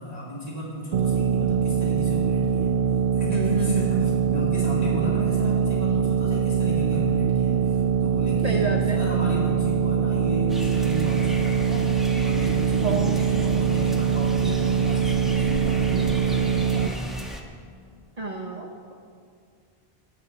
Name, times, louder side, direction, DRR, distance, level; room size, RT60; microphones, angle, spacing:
voice 1, 0.0-2.8 3.1-17.3, equal, 40° left, -5 dB, 2.5 m, -33 dB
sound 1, 0.9-16.9, right 7 dB, 75° right, 0.8 m, -23 dB
voice 2, 3.3-4.0 8.4-9.0 12.7-13.2 18.2-18.9, right 3 dB, 40° right, 1 dB, 0.9 m, -30 dB
sound 2, 10.5-17.4, equal, ahead, 1.1 m, -36 dB
20.5 x 8.8 x 3.9 m, 2.3 s
omnidirectional pair, 1.0 m